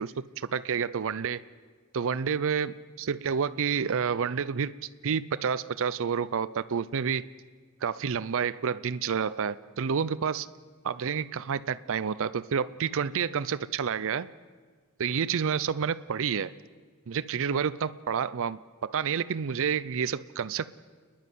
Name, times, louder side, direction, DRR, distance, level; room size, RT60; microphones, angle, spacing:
voice 1, 0.0-1.4 1.9-4.8 5.0-7.2 7.8-10.5 10.8-14.3 15.0-16.5 17.1-20.8, right 6 dB, 60° right, 15 dB, 0.5 m, -29 dB
29.5 x 10.5 x 9.4 m, 1.5 s
head